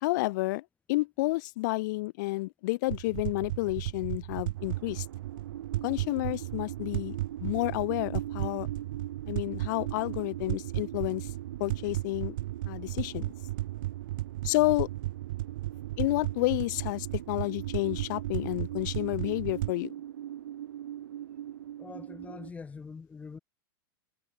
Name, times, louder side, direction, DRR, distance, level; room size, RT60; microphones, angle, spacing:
voice 1, 0.0-5.1 5.8-7.2 7.4-8.7 9.3-11.3 11.6-12.3 12.6-13.3 14.4-14.9 16.0-19.9, left 21 dB, 55° left, 0.8 m, -30 dB
sound 1, 2.9-19.7, right 17 dB, 60° right, 1.4 m, -35 dB
sound 2, 4.5-22.5, right 11 dB, 85° right, 6.4 m, -42 dB
voice 2, 21.8-23.4, left 5 dB, 10° left, 1.9 m, -44 dB
supercardioid pair, 150°, 12 cm